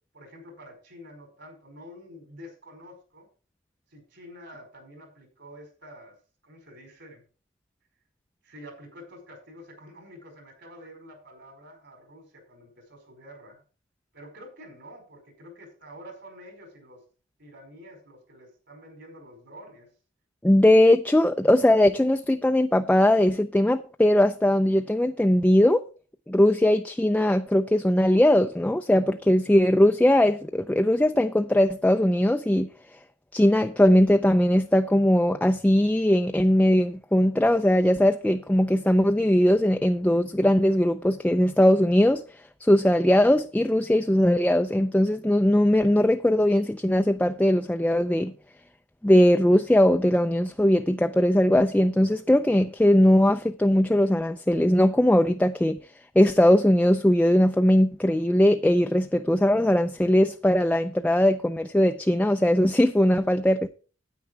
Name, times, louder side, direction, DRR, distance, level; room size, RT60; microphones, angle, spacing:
voice 1, 0.1-3.3 3.9-6.1 6.4-7.2 8.4-13.6 14.1-17.0 17.4-19.9, equal, 65° right, 4.9 m, -47 dB
voice 2, 20.4-25.8 26.3-32.7 33.3-42.2 42.6-48.3 49.0-55.8 56.2-63.7, left 1 dB, 5° left, 0.4 m, -20 dB
9.5 x 9.1 x 4.5 m
head